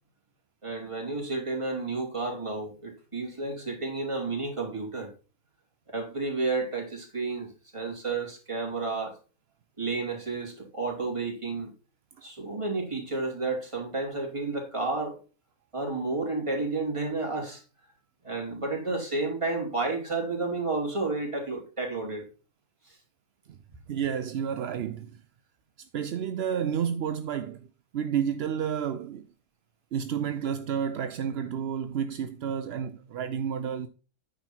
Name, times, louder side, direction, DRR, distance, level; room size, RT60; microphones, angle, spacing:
voice 1, 0.6-5.1 5.9-9.2 9.8-11.7 12.2-15.2 15.7-17.6 18.2-22.3 22.8-23.0, right 3 dB, 20° right, 3.0 m, -31 dB
voice 2, 23.9-25.2 25.9-27.7 27.9-29.3 29.9-33.9, right 8 dB, 60° right, 0.7 m, -30 dB
9.3 x 6.3 x 4.4 m
omnidirectional pair, 1.5 m